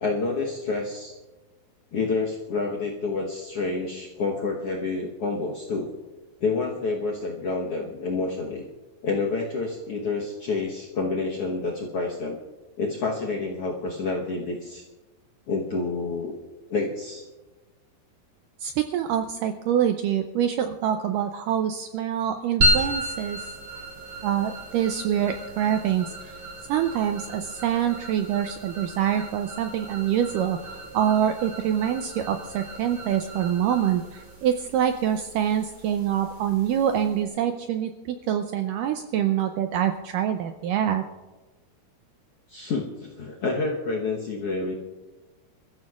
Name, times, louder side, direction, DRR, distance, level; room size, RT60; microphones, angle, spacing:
voice 1, 0.0-1.1 1.9-5.9 6.4-8.6 9.0-12.4 12.8-14.8 15.5-16.3 16.7-17.2 42.5-44.7, left 3 dB, 75° left, -2 dB, 1.3 m, -28 dB
voice 2, 18.6-23.5 24.2-26.4 26.7-41.0, right 9 dB, 90° right, 6 dB, 1.9 m, -25 dB
sound 1, 22.6-37.3, right 1 dB, 35° right, 3.5 m, -33 dB
27.5 x 14.0 x 2.4 m, 1.2 s
omnidirectional pair, 4.5 m